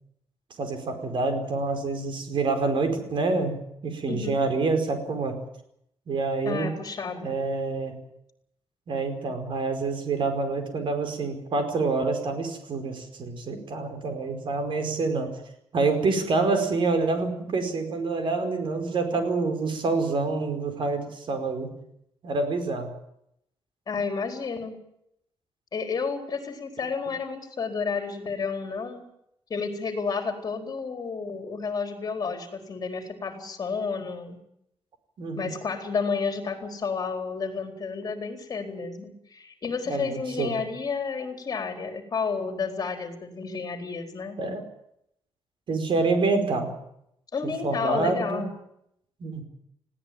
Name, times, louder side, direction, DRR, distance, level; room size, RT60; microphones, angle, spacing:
voice 1, 0.6-5.4 6.1-6.7 7.2-8.0 8.9-15.3 15.7-21.7 22.2-22.9 35.2-35.5 39.9-40.6 44.4-44.6 45.7-46.7 47.4-48.4 49.2-49.4, right 3 dB, 55° right, 7 dB, 5.0 m, -27 dB
voice 2, 4.1-4.4 6.4-7.3 23.9-24.8 25.7-29.0 29.5-34.4 35.4-44.4 47.3-48.5, left 5 dB, 35° left, 5 dB, 4.2 m, -31 dB
20.0 x 16.5 x 9.1 m, 0.76 s
wide cardioid pair, 160°, 10 cm